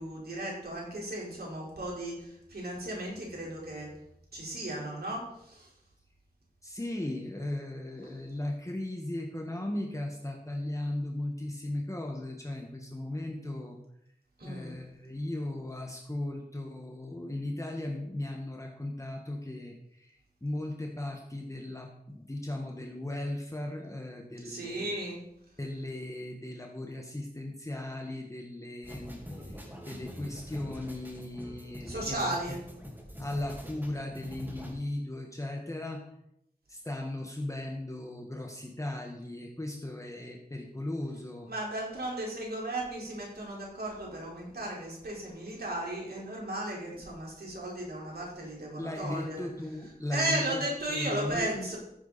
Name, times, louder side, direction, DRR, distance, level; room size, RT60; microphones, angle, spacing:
voice 1, 0.0-3.9 4.3-5.7 14.4-14.7 24.4-25.2 31.8-32.6 41.5-49.5 50.1-51.8, right 1 dB, 85° right, -3 dB, 4.6 m, -35 dB
voice 2, 6.6-13.8 14.4-24.9 25.6-32.6 33.2-36.0 36.7-41.5 48.8-50.6 50.9-51.6, left 1 dB, 20° left, 1 dB, 1.6 m, -37 dB
sound 1, 28.8-34.7, equal, 10° right, 3.9 m, -44 dB
14.5 x 8.3 x 4.2 m, 0.77 s
wide cardioid pair, 60°, 16 cm